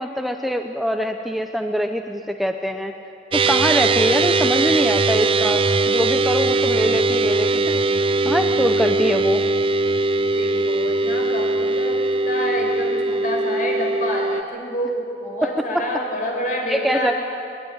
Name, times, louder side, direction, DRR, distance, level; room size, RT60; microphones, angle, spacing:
voice 1, 0.0-2.9 3.3-7.8 8.2-9.4 15.4-15.9 16.7-17.1, equal, ahead, 4 dB, 0.7 m, -23 dB
sound 1, 3.3-14.4, right 3 dB, 30° right, 0.6 m, -20 dB
voice 2, 10.4-17.1, equal, 45° left, 0 dB, 5.1 m, -28 dB
22.5 x 21.0 x 9.8 m, 2.6 s
head